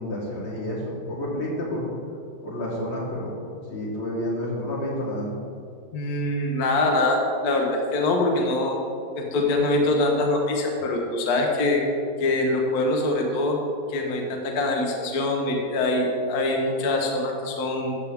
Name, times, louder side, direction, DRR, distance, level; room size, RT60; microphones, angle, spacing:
voice 1, 0.0-1.9 2.4-3.4 3.7-5.3, left 1 dB, 80° left, -7 dB, 3.7 m, -29 dB
voice 2, 5.9-8.8 9.1-11.8 12.2-13.6 13.9-18.0, left 2 dB, 55° left, 0 dB, 1.4 m, -24 dB
13.5 x 7.6 x 3.5 m, 2.4 s
omnidirectional pair, 2.3 m